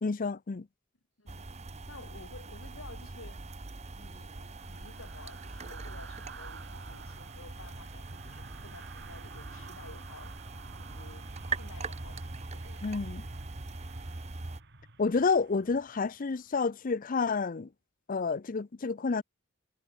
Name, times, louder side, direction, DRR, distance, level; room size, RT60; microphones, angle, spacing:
voice 1, 0.0-0.7 12.8-13.2 15.0-17.7 18.1-19.2, left 4 dB, 40° left, 0.5 m, -29 dB
voice 2, 1.2-1.5 1.9-3.4 4.0-10.3 10.8-11.3 11.5-13.0, left 3 dB, 80° left, 2.7 m, -52 dB
sound 1, 1.3-14.6, right 3 dB, 30° right, 1.0 m, -42 dB
sound 2, 3.2-16.6 16.9-17.1, right 4 dB, 55° right, 2.8 m, -52 dB
head